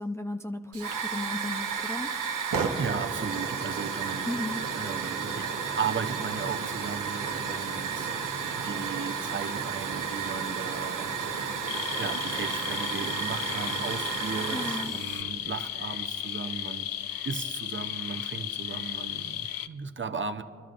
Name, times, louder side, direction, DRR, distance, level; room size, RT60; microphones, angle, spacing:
voice 1, 0.0-2.1 4.2-4.6 14.5-14.9, left 1 dB, 10° left, 5 dB, 0.5 m, -35 dB
Hiss / Fire, 0.7-15.2, right 6 dB, 65° right, 1.0 m, -32 dB
voice 2, 2.8-4.3 4.7-8.1 8.4-16.9 17.2-20.4, right 5 dB, 35° right, 7 dB, 0.7 m, -36 dB
sound 1, 11.7-19.7, left 11 dB, 80° left, 0.5 m, -35 dB
25.0 x 12.0 x 2.5 m, 2.4 s
cardioid pair, 55°, 34 cm